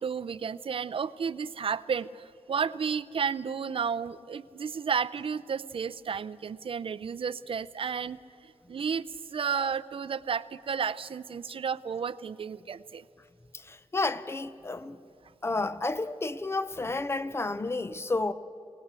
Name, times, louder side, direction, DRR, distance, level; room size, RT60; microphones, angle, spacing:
voice 1, 0.0-8.2 8.4-13.0, right 6 dB, 55° right, 0.6 m, -32 dB
voice 2, 13.6-15.0 15.4-18.3, left 3 dB, 20° left, 0.8 m, -31 dB
23.0 x 18.5 x 8.2 m
wide cardioid pair, 145°, 11 cm